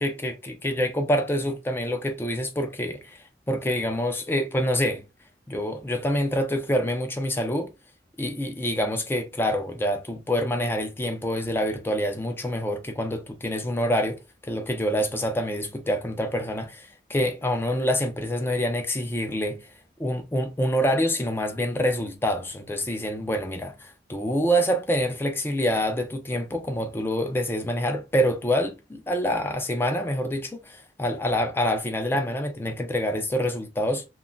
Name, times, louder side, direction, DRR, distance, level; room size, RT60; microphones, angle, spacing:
voice 1, 0.0-5.0 5.5-7.7 8.2-19.7 20.0-34.1, equal, 15° left, 0.4 m, -26 dB
2.3 x 2.0 x 3.7 m
head